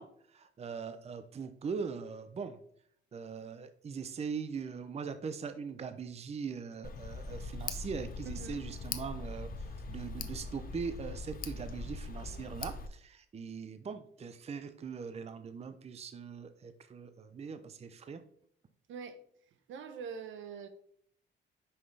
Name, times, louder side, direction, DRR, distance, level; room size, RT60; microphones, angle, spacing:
voice 1, 0.0-2.6 3.1-18.2, right 5 dB, 30° right, 10 dB, 0.6 m, -41 dB
Tick, 6.8-12.9, left 3 dB, 45° left, 0.7 m, -41 dB
voice 2, 8.3-8.6 18.9-19.2 19.7-20.7, right 6 dB, 75° right, 9 dB, 0.8 m, -43 dB
5.4 x 5.4 x 3.3 m, 0.65 s
cardioid pair, 90°, 20 cm